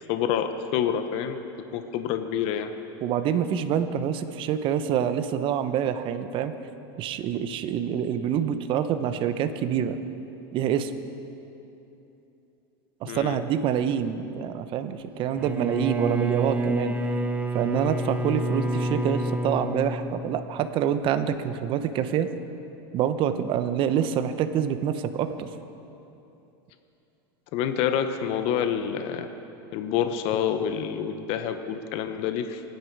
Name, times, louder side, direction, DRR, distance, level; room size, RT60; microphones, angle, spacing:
voice 1, 0.1-1.4 1.7-2.7 13.0-13.4 27.5-29.3 29.7-32.6, left 8 dB, 50° left, 8 dB, 1.0 m, -27 dB
voice 2, 3.0-6.5 7.0-10.0 10.5-10.9 13.0-17.0 17.5-22.3 22.9-25.5, right 9 dB, 40° right, 10 dB, 0.9 m, -26 dB
Bowed string instrument, 15.3-20.7, right 1 dB, 10° right, 0.9 m, -29 dB
24.5 x 9.9 x 4.7 m, 2.9 s
supercardioid pair, 120°, 13 cm